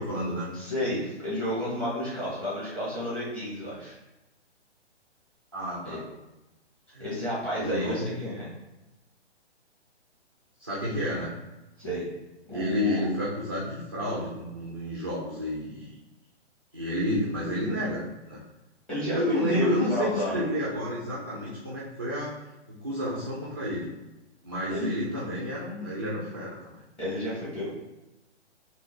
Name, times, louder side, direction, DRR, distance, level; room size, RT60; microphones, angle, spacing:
voice 1, 0.0-0.5 5.5-6.0 6.9-7.1 7.6-8.1 10.6-11.3 12.5-15.9 16.7-18.4 19.1-22.3 22.7-23.9 24.4-26.8 27.6-27.7, equal, 20° right, -6 dB, 0.3 m, -30 dB
voice 2, 0.5-3.9 5.8-6.0 7.0-8.5 11.8-12.1 12.5-13.1 18.9-20.4 24.7-24.9 27.0-27.7, left 1 dB, 5° left, -8 dB, 0.9 m, -31 dB
3.6 x 2.5 x 3.1 m, 1.0 s
figure-of-eight pair, 130°, 35 cm